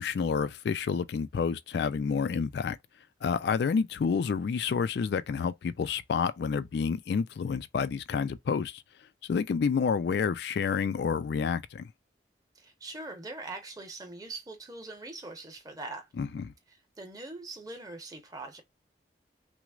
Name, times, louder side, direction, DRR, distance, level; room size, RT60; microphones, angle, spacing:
voice 1, 0.0-2.8 3.2-8.8 9.2-11.9 16.2-16.5, left 6 dB, 65° left, 0.3 m, -29 dB
voice 2, 12.5-16.1 16.7-18.6, right 2 dB, 20° right, 0.9 m, -42 dB
6.0 x 2.1 x 2.4 m
head